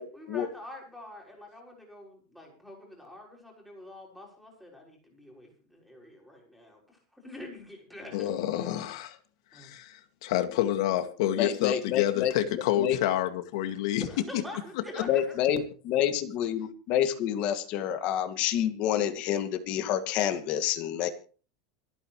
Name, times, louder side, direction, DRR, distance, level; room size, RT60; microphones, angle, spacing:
voice 1, 0.1-8.3 8.6-8.7 9.5-9.7 14.0-15.4, left 1 dB, ahead, -1 dB, 6.2 m, -46 dB
voice 2, 8.1-9.2 9.5-14.1 14.3-14.4 14.9-15.0, left 12 dB, 65° left, 9 dB, 2.1 m, -28 dB
voice 3, 11.4-13.0 15.1-21.1, left 10 dB, 40° left, 8 dB, 2.2 m, -28 dB
27.5 x 9.3 x 3.2 m, 0.38 s
supercardioid pair, 165°, 3 cm